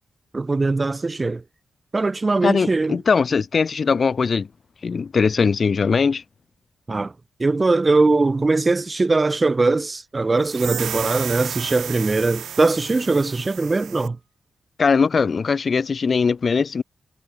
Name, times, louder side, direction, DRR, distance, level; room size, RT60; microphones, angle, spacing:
voice 1, 0.3-1.4 1.9-3.0 6.9-7.1 7.4-14.2, right 3 dB, 30° right, 3.6 m, -20 dB
voice 2, 2.4-4.5 4.8-6.2 14.8-16.8, left 5 dB, 55° left, 3.1 m, -20 dB
sound 1, 10.4-14.1, right 9 dB, 90° right, 6.6 m, -33 dB
cardioid pair, 80°, 0 cm